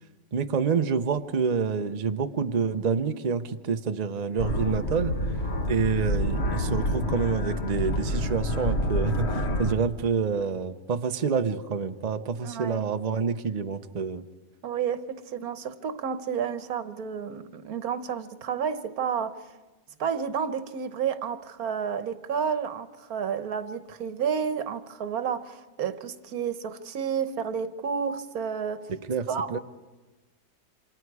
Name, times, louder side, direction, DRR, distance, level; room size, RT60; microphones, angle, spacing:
voice 1, 0.3-5.1 5.7-14.2 28.9-29.6, right 5 dB, 80° right, 0.3 m, -27 dB
sound 1, 4.4-9.8, left 1 dB, 40° left, 1.5 m, -28 dB
voice 2, 12.4-12.9 14.6-19.4 20.0-28.8 29.3-29.6, right 7 dB, 60° right, 1.4 m, -31 dB
28.0 x 26.0 x 4.8 m
omnidirectional pair, 1.9 m